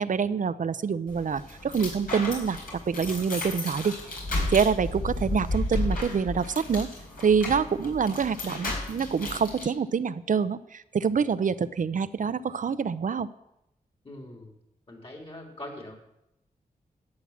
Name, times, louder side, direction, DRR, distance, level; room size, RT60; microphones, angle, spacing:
voice 1, 0.0-2.6 2.9-3.9 4.5-6.9 7.2-13.3, right 6 dB, 60° right, 15 dB, 0.6 m, -26 dB
sound 1, 1.1-9.7, left 2 dB, 70° left, 4.6 m, -33 dB
voice 2, 14.0-14.5 14.9-15.9, left 1 dB, 40° left, 1 dB, 3.5 m, -42 dB
13.0 x 8.8 x 7.3 m, 0.85 s
wide cardioid pair, 80°, 15 cm